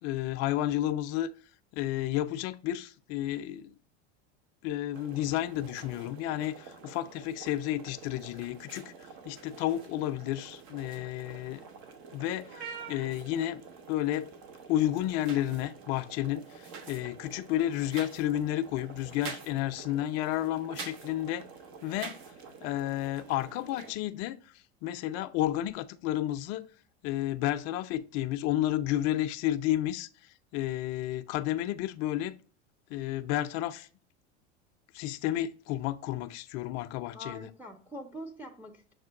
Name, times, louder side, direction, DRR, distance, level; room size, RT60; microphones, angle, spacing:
voice 1, 0.0-1.3 1.7-3.7 4.6-8.9 9.2-11.6 12.1-13.6 13.9-14.3 14.7-21.5 21.8-22.2 22.6-24.5 24.8-26.6 27.0-30.1 30.5-32.4 32.9-33.9 34.9-37.5, left 13 dB, 50° left, 0.5 m, -31 dB
sound 1, 4.9-23.9, right 5 dB, 60° right, 0.9 m, -47 dB
voice 2, 37.1-38.9, equal, 5° right, 0.6 m, -44 dB
6.5 x 2.2 x 3.6 m
hypercardioid pair, 100°, 35 cm